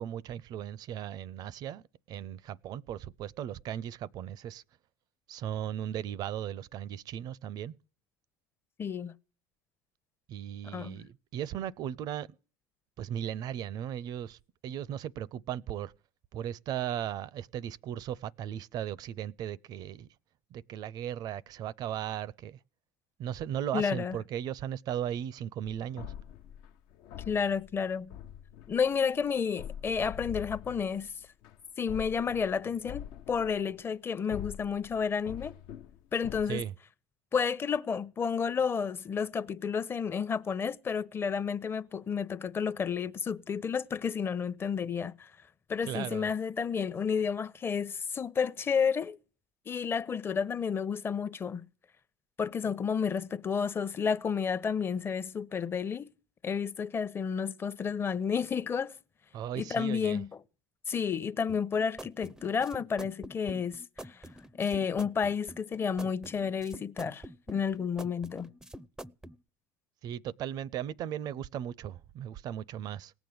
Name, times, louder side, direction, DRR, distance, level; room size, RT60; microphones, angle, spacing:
voice 1, 0.0-4.6 5.3-7.7 10.3-12.3 13.0-15.9 16.3-20.1 20.5-22.6 23.2-26.1 36.5-36.7 45.9-46.3 59.3-60.2 70.0-73.1, right 10 dB, 50° right, 0.6 m, -37 dB
voice 2, 8.8-9.1 10.6-11.1 23.7-24.2 27.3-28.2 28.7-31.1 31.8-35.5 36.1-36.6 37.3-45.3 45.7-49.2 49.7-51.6 52.4-56.1 56.4-58.9 59.6-60.3 60.9-64.2 64.6-68.5, left 6 dB, 25° left, 0.8 m, -31 dB
sound 1, 25.6-33.9 34.3-36.6, left 10 dB, 65° left, 0.9 m, -45 dB
sound 2, 61.5-69.4, right 1 dB, 5° right, 0.6 m, -46 dB
18.0 x 7.1 x 7.9 m
hypercardioid pair, 90°, 9 cm